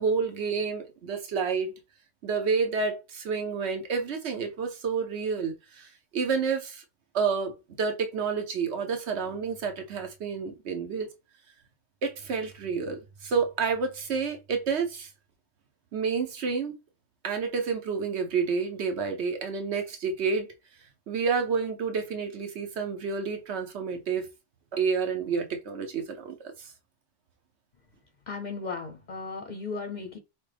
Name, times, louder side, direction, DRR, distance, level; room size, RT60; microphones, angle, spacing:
voice 1, 0.0-1.7 2.2-6.8 7.1-11.1 12.0-15.1 15.9-16.8 17.2-20.5 21.1-24.3 24.7-26.7, right 5 dB, 65° right, 1.1 m, -29 dB
voice 2, 28.3-30.2, left 4 dB, 50° left, 0.6 m, -36 dB
5.8 x 2.2 x 3.3 m
omnidirectional pair, 1.2 m